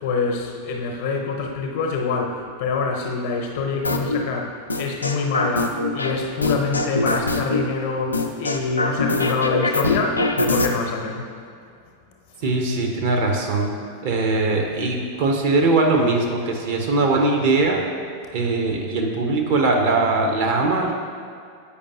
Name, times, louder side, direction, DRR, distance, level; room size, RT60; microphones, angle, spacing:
voice 1, 0.0-11.3, left 4 dB, 50° left, 2 dB, 0.8 m, -25 dB
sound 1, 3.8-4.2 4.7-6.1 6.4-7.6 8.1-10.7, left 2 dB, 80° left, 0.4 m, -22 dB
voice 2, 12.4-13.7 14.0-17.8 18.3-20.9, right 3 dB, 50° right, 2 dB, 0.9 m, -21 dB
8.4 x 5.2 x 2.8 m, 2.3 s
figure-of-eight pair, 90°, 0 cm